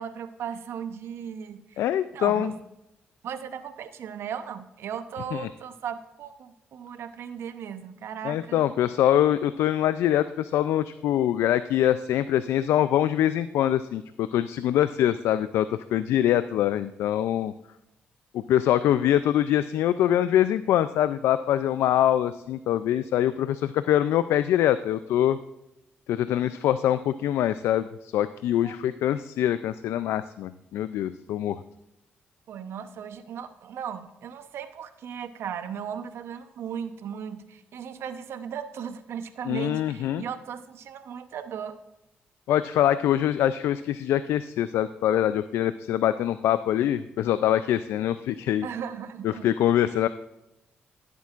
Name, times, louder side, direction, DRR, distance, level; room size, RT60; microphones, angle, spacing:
voice 1, 0.0-1.8 2.1-2.5 3.2-8.6 28.6-28.8 32.5-41.8 48.6-49.5 49.9-50.0, right 8 dB, 75° right, 10 dB, 0.8 m, -37 dB
voice 2, 1.8-2.5 5.3-5.5 8.2-17.5 18.3-25.4 26.1-31.6 39.5-40.2 42.5-48.7 49.2-50.1, left 11 dB, 85° left, 13 dB, 0.3 m, -24 dB
14.5 x 8.3 x 2.5 m, 0.89 s
cardioid pair, 70°, 4 cm